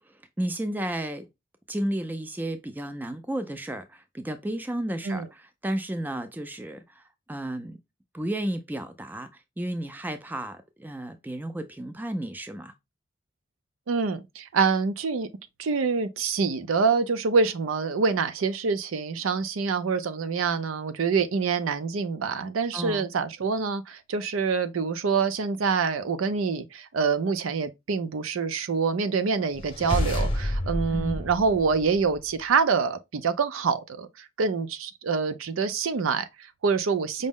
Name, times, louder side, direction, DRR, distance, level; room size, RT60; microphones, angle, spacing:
voice 1, 0.4-1.3 1.7-6.8 7.3-7.8 8.1-9.3 9.6-12.7 22.7-23.1 30.9-31.2, right 1 dB, 10° right, 0.3 m, -32 dB
voice 2, 13.9-15.3 15.6-37.3, right 5 dB, 85° right, 0.5 m, -26 dB
sound 1, 29.6-32.3, left 1 dB, 25° left, 0.7 m, -29 dB
5.2 x 2.0 x 3.5 m
head